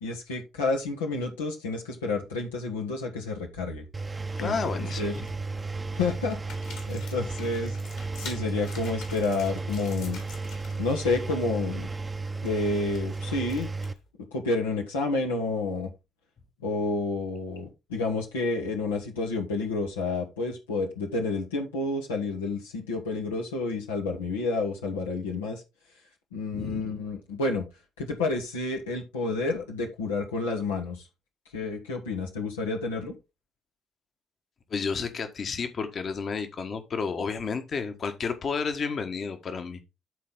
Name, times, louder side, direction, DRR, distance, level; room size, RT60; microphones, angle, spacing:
voice 1, 0.0-3.8 4.4-5.2 5.9-6.4 6.9-7.8 8.2-10.2 10.8-11.9 12.4-13.7 14.3-15.9 16.6-25.6 26.3-27.7 28.0-31.0 31.5-33.1, left 3 dB, 90° left, 1.3 m, -30 dB
Engine, 3.9-13.9, right 3 dB, 30° right, 0.8 m, -34 dB
sound 1, 4.3-4.6 5.0-5.6 6.2-10.9 11.2-11.5 11.8-14.1, left 5 dB, 75° left, 3.5 m, -47 dB
voice 2, 4.4-5.3 26.5-26.8 34.7-39.9, left 5 dB, 55° left, 1.5 m, -31 dB
12.5 x 4.3 x 3.8 m
hypercardioid pair, 45°, 0 cm